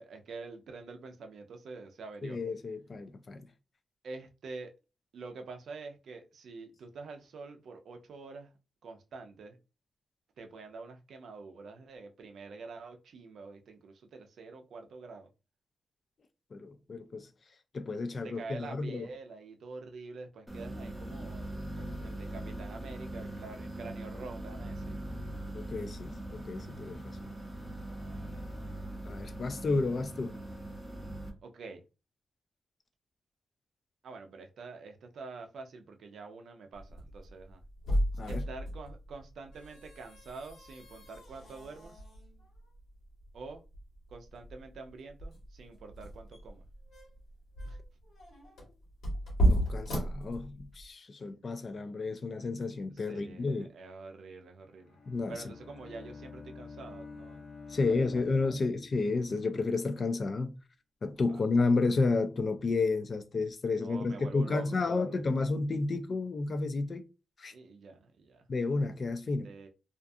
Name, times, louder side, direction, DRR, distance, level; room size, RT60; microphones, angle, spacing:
voice 1, 0.0-2.4 4.0-4.7 5.1-8.5 8.8-9.6 10.4-15.3 18.1-24.9 27.9-28.4 29.0-29.1 31.4-31.8 34.0-37.6 38.3-42.0 43.3-43.6 44.1-46.6 47.6-47.8 51.2-51.3 53.0-55.0 55.3-57.8 61.3-61.4 63.8-65.2 67.5-68.5 69.4-69.7, right 4 dB, 70° right, 0.5 m, -46 dB
voice 2, 2.2-3.5 16.5-17.3 17.7-19.1 25.5-27.3 29.0-30.4 38.2-38.4 49.5-53.7 55.1-55.4 57.7-60.5 61.0-67.0 67.4-67.5 68.5-69.5, left 3 dB, 40° left, 0.3 m, -31 dB
sound 1, 20.5-31.3, right 1 dB, 5° right, 0.6 m, -41 dB
sound 2, 36.7-50.9, right 1 dB, 90° left, 1.2 m, -35 dB
Bowed string instrument, 54.6-59.4, left 4 dB, 65° left, 0.7 m, -48 dB
2.4 x 2.3 x 2.6 m
wide cardioid pair, 120°, 0 cm